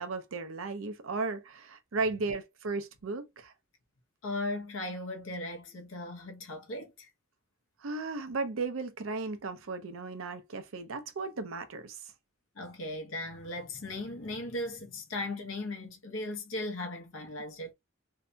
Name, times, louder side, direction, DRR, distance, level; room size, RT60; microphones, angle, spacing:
voice 1, 0.0-3.5 7.8-12.0, right 3 dB, 85° right, 0.6 m, -35 dB
voice 2, 4.2-7.1 12.6-17.7, left 2 dB, 75° left, 0.7 m, -37 dB
2.7 x 2.1 x 2.6 m
head